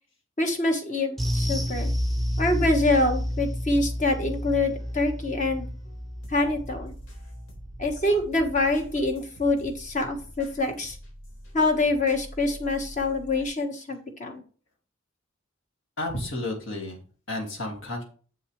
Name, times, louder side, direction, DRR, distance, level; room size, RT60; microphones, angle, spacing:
voice 1, 0.4-1.9 2.4-5.7 6.3-6.9 7.8-11.0 11.5-14.4, left 2 dB, 40° left, 5 dB, 1.4 m, -25 dB
sound 1, 1.2-9.8 10.1-10.3 10.7-10.8, equal, ahead, 0.8 m, -31 dB
sound 2, 3.7-4.3 4.6-13.5, equal, 85° left, 3.6 m, -46 dB
voice 2, 16.0-18.0, left 2 dB, 70° left, 0 dB, 2.4 m, -32 dB
7.4 x 6.6 x 3.2 m, 0.40 s
head